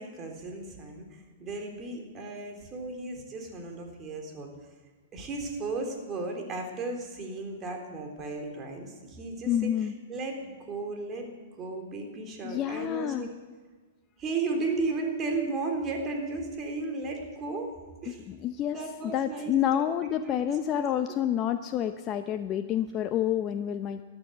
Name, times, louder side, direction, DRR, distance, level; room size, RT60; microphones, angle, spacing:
voice 1, 0.0-4.5 5.1-11.3 11.6-13.3 14.2-17.7 18.0-18.2 18.7-20.5 20.7-21.2, right 3 dB, 25° right, 2 dB, 3.7 m, -35 dB
voice 2, 9.5-9.9 12.4-13.3 18.1-18.8 19.1-24.0, left 10 dB, 30° left, 8 dB, 0.7 m, -28 dB
14.0 x 12.5 x 8.0 m, 1.4 s
hypercardioid pair, 120°, 0 cm